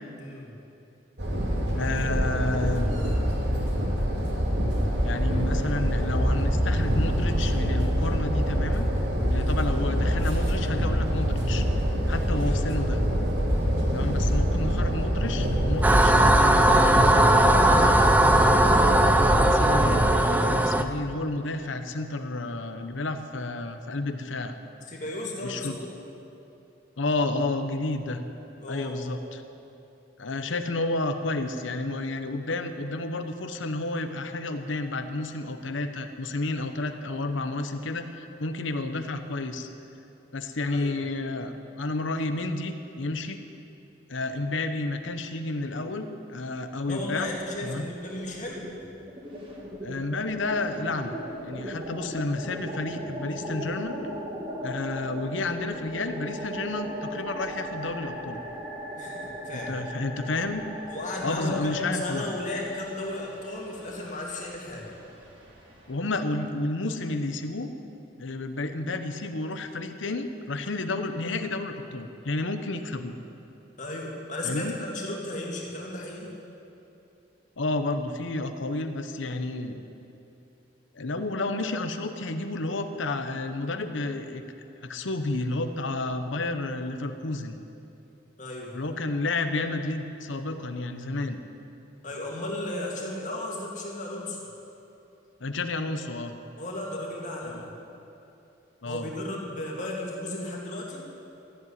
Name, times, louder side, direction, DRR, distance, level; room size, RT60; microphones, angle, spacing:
voice 1, 0.2-0.5 9.4-9.6 12.4-13.0 24.9-25.9 28.6-29.0 40.7-41.0 46.9-48.7 59.0-59.8 60.9-64.9 73.8-76.3 88.4-88.7 92.0-94.4 96.6-97.7 98.9-101.0, left 1 dB, 40° left, -2 dB, 2.2 m, -34 dB
sound 1, 1.2-20.0, equal, 60° right, 2.4 m, -25 dB
voice 2, 1.7-3.0 5.0-8.9 9.3-11.7 12.1-13.0 13.9-17.1 19.3-24.5 25.4-25.8 27.0-28.2 28.7-29.4 30.2-39.7 40.3-43.4 44.1-47.3 47.6-47.9 49.8-51.2 51.4-54.0 54.6-58.4 59.5-60.6 61.2-62.2 65.9-67.7 68.2-73.2 74.4-74.8 77.6-79.8 80.9-84.4 84.8-87.6 88.7-91.4 95.4-96.3 97.5-97.6 98.8-99.1, left 2 dB, 75° left, 8 dB, 0.9 m, -31 dB
sound 2, 15.8-20.8, right 1 dB, 10° right, 0.4 m, -19 dB
sound 3, 46.9-47.7 48.0-66.0, equal, 25° right, 1.9 m, -39 dB
14.0 x 7.8 x 9.6 m, 2.8 s
head